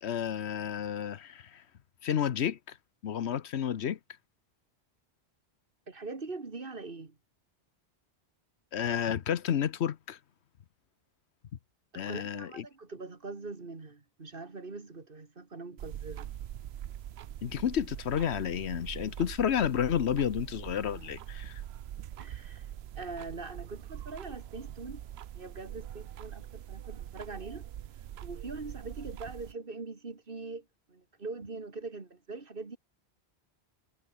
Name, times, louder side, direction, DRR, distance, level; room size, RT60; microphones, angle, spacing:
voice 1, 0.0-1.6 2.0-2.8 3.0-4.0 8.7-10.2 11.9-12.6 17.4-21.6, left 9 dB, 75° left, 1.1 m, -31 dB
voice 2, 5.9-7.2 11.9-16.3 22.2-22.7 22.9-25.0 25.3-27.7 28.2-32.8, right 3 dB, 55° right, 2.2 m, -42 dB
sound 1, 15.8-29.5, right 11 dB, 70° right, 0.9 m, -43 dB
omnidirectional pair, 1.1 m